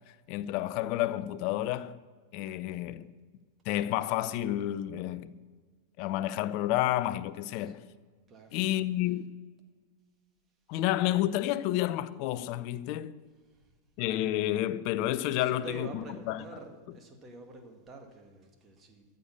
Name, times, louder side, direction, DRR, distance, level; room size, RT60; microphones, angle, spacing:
voice 1, 0.3-2.0 2.3-3.1 3.7-5.3 6.0-7.8 8.5-9.4 10.7-13.2 14.0-16.4, left 14 dB, 45° left, 0.5 m, -30 dB
voice 2, 8.3-8.9 13.5-13.7 15.3-19.0, right 2 dB, 25° right, 2.0 m, -47 dB
14.5 x 6.7 x 8.3 m
figure-of-eight pair, 90°, 0 cm